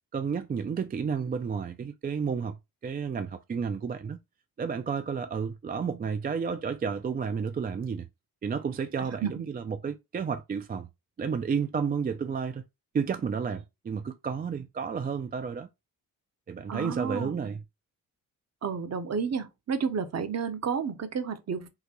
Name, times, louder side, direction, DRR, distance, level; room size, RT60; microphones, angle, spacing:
voice 1, 0.1-2.6 2.8-4.2 4.6-8.1 8.4-10.9 11.2-12.6 12.9-15.7 16.5-17.6, right 6 dB, 25° right, 0.3 m, -31 dB
voice 2, 9.0-9.4 16.7-17.3 18.6-21.7, right 6 dB, 45° right, 0.8 m, -31 dB
3.7 x 2.1 x 2.9 m
cardioid pair, 70°, 36 cm